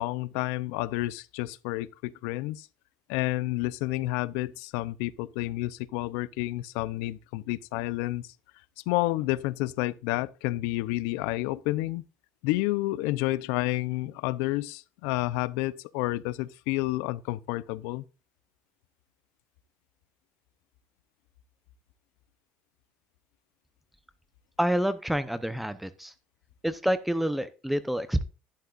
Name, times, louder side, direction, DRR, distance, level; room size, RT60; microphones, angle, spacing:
voice 1, 0.0-2.7 3.1-8.3 8.9-12.0 12.4-18.0, left 18 dB, 85° left, 0.6 m, -30 dB
voice 2, 24.6-26.1 26.6-28.2, equal, 5° right, 0.7 m, -28 dB
11.5 x 11.0 x 2.5 m
cardioid pair, 150°, 4 cm